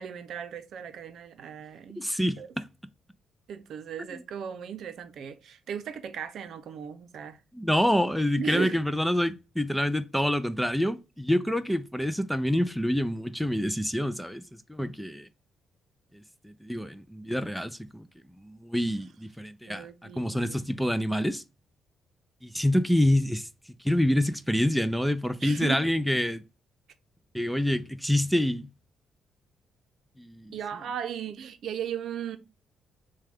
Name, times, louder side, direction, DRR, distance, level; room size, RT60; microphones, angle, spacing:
voice 1, 0.0-2.1 2.4-2.5 3.5-7.4 8.4-8.9 19.7-20.9 25.4-25.8 30.5-32.4, right 8 dB, 70° right, 0.6 m, -37 dB
voice 2, 2.0-2.6 4.1-4.2 7.5-14.4 14.7-15.3 16.1-18.1 18.4-19.9 20.2-21.4 22.4-23.5 23.8-26.4 27.3-28.7 30.2-30.5, left 1 dB, ahead, 0.4 m, -27 dB
6.3 x 2.3 x 3.5 m
cardioid pair, 90°, 0 cm